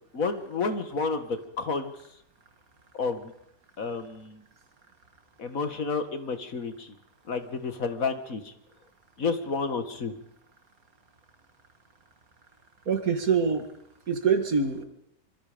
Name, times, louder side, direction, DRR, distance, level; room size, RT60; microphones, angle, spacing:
voice 1, 0.1-1.9 2.9-3.3 3.8-4.4 5.4-6.9 7.3-8.5 9.2-10.2, left 4 dB, 70° left, 8 dB, 2.3 m, -30 dB
voice 2, 12.9-13.7 14.1-14.8, right 6 dB, 85° right, 6 dB, 2.6 m, -24 dB
25.5 x 25.0 x 5.2 m, 0.77 s
omnidirectional pair, 1.5 m